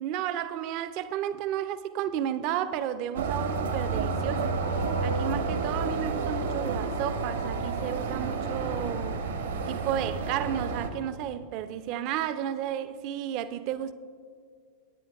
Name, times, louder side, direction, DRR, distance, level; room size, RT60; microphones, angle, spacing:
voice 1, 0.0-4.6 5.0-9.2 9.7-13.9, right 10 dB, 45° right, 0.5 m, -32 dB
sound 1, 3.2-10.9, right 4 dB, 70° right, 1.1 m, -30 dB
27.0 x 9.3 x 2.4 m
figure-of-eight pair, 90°, 0 cm